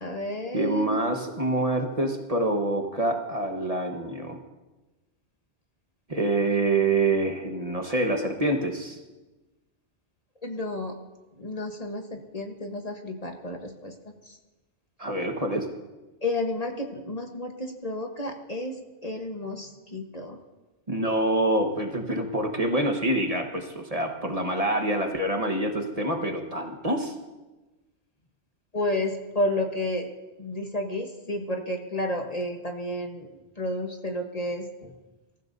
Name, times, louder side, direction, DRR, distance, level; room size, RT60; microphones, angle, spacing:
voice 1, 0.0-1.0 10.4-10.9 11.4-14.4 16.2-18.8 19.0-20.4 28.7-30.1 30.4-33.3 33.6-34.9, left 1 dB, 35° left, 3 dB, 1.2 m, -31 dB
voice 2, 0.5-4.4 6.1-9.0 15.0-15.7 20.9-27.1, right 2 dB, 35° right, 3 dB, 1.3 m, -26 dB
25.0 x 14.5 x 2.7 m, 1.1 s
omnidirectional pair, 1.1 m